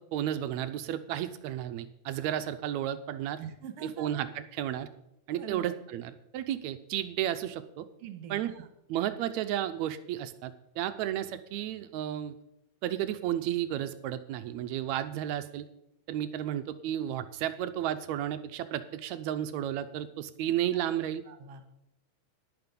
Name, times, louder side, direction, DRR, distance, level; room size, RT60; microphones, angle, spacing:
voice 1, 0.0-3.4 3.8-4.9 5.3-7.9 8.3-8.5 8.9-12.3 12.8-15.7 16.1-21.2, right 11 dB, 80° right, 11 dB, 1.7 m, -33 dB
voice 2, 3.4-4.2 5.4-5.8 8.0-8.7 20.7-20.8 21.3-21.6, right 8 dB, 60° right, 8 dB, 2.0 m, -43 dB
10.5 x 10.5 x 5.3 m, 0.83 s
omnidirectional pair, 3.6 m